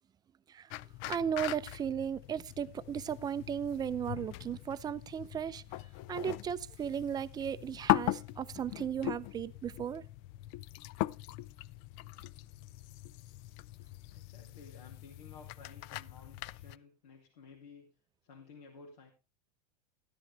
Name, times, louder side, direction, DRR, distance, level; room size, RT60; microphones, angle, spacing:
sound 1, 0.7-16.8, left 17 dB, 50° left, 0.5 m, -40 dB
voice 1, 1.1-5.6 6.1-10.0, right 8 dB, 20° right, 0.5 m, -36 dB
voice 2, 14.1-17.9 18.2-19.1, left 5 dB, 80° left, 2.6 m, -54 dB
13.0 x 10.5 x 3.3 m
hypercardioid pair, 120°, 20 cm